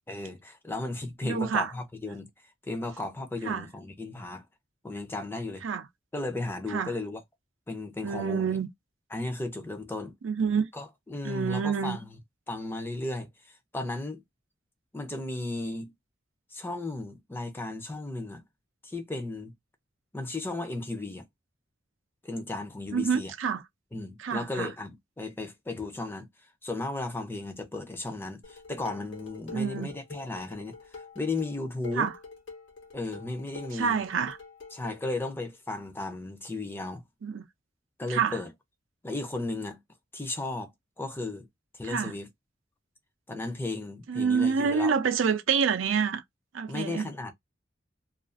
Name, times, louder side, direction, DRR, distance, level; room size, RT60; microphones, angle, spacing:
voice 1, 0.1-2.3 2.6-4.4 4.8-5.6 6.1-7.2 7.7-8.6 9.1-10.1 10.7-12.2 12.5-13.3 13.7-14.2 14.9-15.9 16.5-18.4 18.8-19.5 20.1-21.2 22.2-23.3 23.9-26.3 26.6-30.8 31.2-32.1 32.9-34.0 34.7-37.0 38.0-38.5 39.0-39.8 40.1-40.7 41.0-41.5 41.7-42.3 43.3-44.9 46.7-47.3, left 2 dB, 10° left, 0.5 m, -35 dB
voice 2, 1.2-1.7 3.4-3.7 5.6-5.9 6.7-6.9 8.0-8.7 10.2-10.7 11.2-12.0 22.9-23.6 24.2-24.7 29.5-29.9 32.0-32.1 33.7-34.4 37.2-37.4 38.1-38.4 41.8-42.1 44.1-46.2 46.5-47.1, right 6 dB, 85° right, 0.4 m, -27 dB
Dishes pots and pans, 28.4-35.0, left 4 dB, 75° left, 1.0 m, -46 dB
2.4 x 2.3 x 2.4 m
head